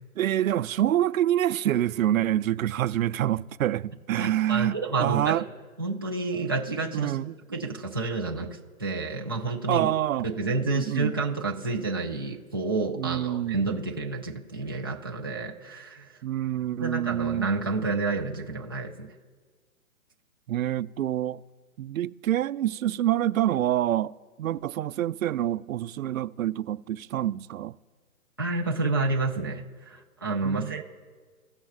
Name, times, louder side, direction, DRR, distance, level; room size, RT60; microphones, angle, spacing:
voice 1, 0.2-5.5 6.9-7.4 9.7-10.3 10.6-11.1 13.0-13.6 16.2-17.5 20.5-21.4 21.8-24.1 24.4-27.7 30.4-30.8, right 12 dB, 75° right, 0.5 m, -26 dB
voice 2, 4.2-5.4 5.8-7.2 7.5-9.9 10.2-16.1 16.8-19.1 28.4-30.8, right 3 dB, 20° right, 0.4 m, -29 dB
17.0 x 6.2 x 2.4 m
hypercardioid pair, 160°, 41 cm